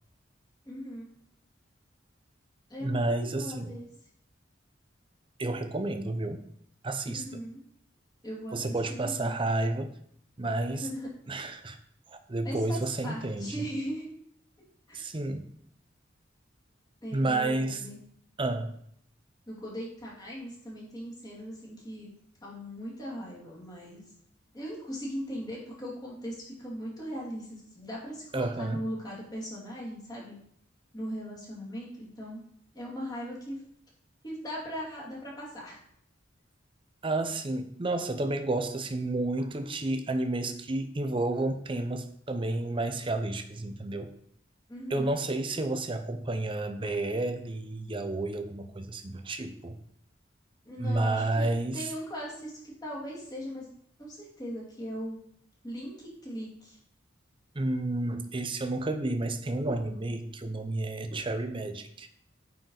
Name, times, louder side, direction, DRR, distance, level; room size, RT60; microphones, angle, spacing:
voice 1, 0.6-1.1 2.7-3.9 7.1-7.6 8.2-9.4 10.7-11.1 12.4-14.1 14.9-15.0 17.0-18.0 19.5-22.1 22.4-24.1 24.5-30.4 30.9-32.4 32.7-33.6 34.2-35.8 44.7-45.1 50.7-53.7 54.0-55.2 55.6-56.8, equal, 20° left, -5 dB, 2.5 m, -39 dB
voice 2, 2.8-3.7 5.4-6.5 6.8-7.2 8.5-10.0 10.4-10.9 11.3-11.8 12.1-13.6 14.9-15.4 17.1-17.8 18.4-18.8 28.3-28.8 37.0-44.1 44.9-49.8 50.8-51.9 57.5-62.1, right 2 dB, 30° right, 8 dB, 0.6 m, -31 dB
8.8 x 4.5 x 3.9 m, 0.67 s
head